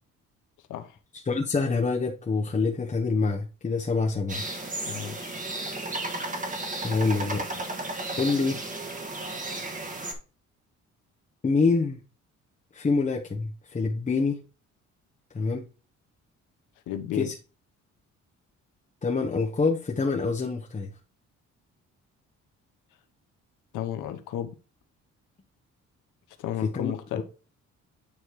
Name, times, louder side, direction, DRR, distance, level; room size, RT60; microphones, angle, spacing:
voice 1, 1.3-4.4 6.8-7.5 8.2-8.6 11.4-12.0 12.7-14.4 15.3-15.6 17.1-17.3 19.0-20.9 26.7-27.2, left 4 dB, 25° left, 1.0 m, -26 dB
sound 1, 4.3-10.1, right 2 dB, 25° right, 1.6 m, -34 dB
voice 2, 4.9-5.4 16.9-17.3 23.7-24.6 26.4-27.2, left 11 dB, 85° left, 1.0 m, -33 dB
8.8 x 3.2 x 4.6 m
cardioid pair, 90°, 30 cm